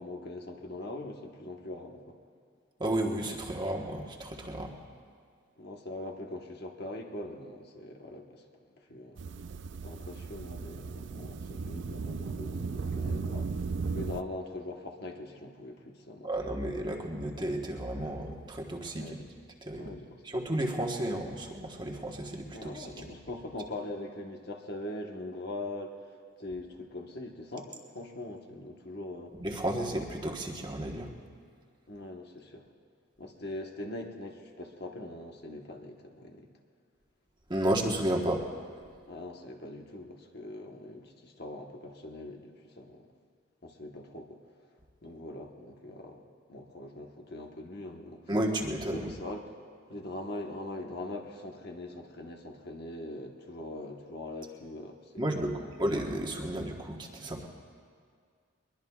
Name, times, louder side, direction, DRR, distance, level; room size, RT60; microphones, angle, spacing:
voice 1, 0.0-2.2 5.6-8.5 8.7-9.2 9.8-16.3 19.0-19.2 19.7-20.2 22.5-29.4 31.9-32.7 33.2-36.5 39.1-43.1 43.6-44.4 45.0-48.3 48.9-49.5 49.9-55.7, left 1 dB, 50° left, 2 dB, 1.2 m, -42 dB
voice 2, 2.8-4.7 16.2-19.2 19.6-19.9 20.2-23.1 29.4-31.1 37.5-38.4 48.3-49.1 55.2-57.5, right 1 dB, 20° right, 0 dB, 1.2 m, -32 dB
sound 1, 9.2-14.2, right 4 dB, 60° right, 0.4 m, -36 dB
22.0 x 22.0 x 2.4 m, 2.1 s
head